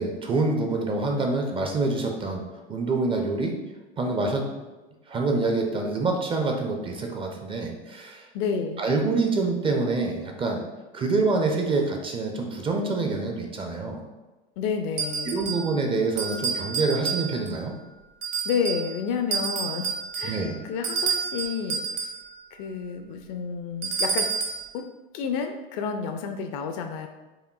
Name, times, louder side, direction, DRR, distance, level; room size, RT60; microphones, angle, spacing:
voice 1, 0.0-2.4 2.7-3.5 4.0-4.4 5.1-8.3 8.8-10.6 10.9-14.0 15.2-17.7 20.2-20.6, right 3 dB, 20° right, 2 dB, 0.4 m, -26 dB
voice 2, 8.3-8.8 14.6-15.4 18.4-21.8 22.5-24.3 24.7-24.8 25.1-27.1, left 6 dB, 40° left, 6 dB, 0.4 m, -30 dB
sound 1, 15.0-15.7 16.2-17.6 18.2-18.9 19.3-22.2 23.8-24.7, right 6 dB, 55° right, 1.0 m, -29 dB
4.8 x 2.5 x 2.3 m, 1.1 s
hypercardioid pair, 95°, 29 cm